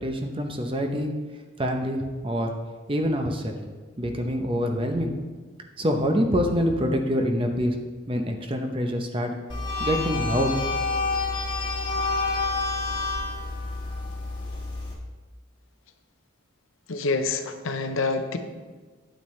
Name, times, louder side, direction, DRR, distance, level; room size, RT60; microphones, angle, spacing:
voice 1, 0.0-1.1 1.6-2.5 2.9-3.6 4.0-5.1 5.8-7.7 8.1-9.3 9.8-10.5, equal, 25° right, 4 dB, 0.7 m, -25 dB
sound 1, 9.5-14.9, left 3 dB, 25° left, 1.3 m, -28 dB
voice 2, 16.9-18.4, left 3 dB, 80° left, 7 dB, 0.7 m, -27 dB
9.1 x 8.7 x 3.2 m, 1.4 s
head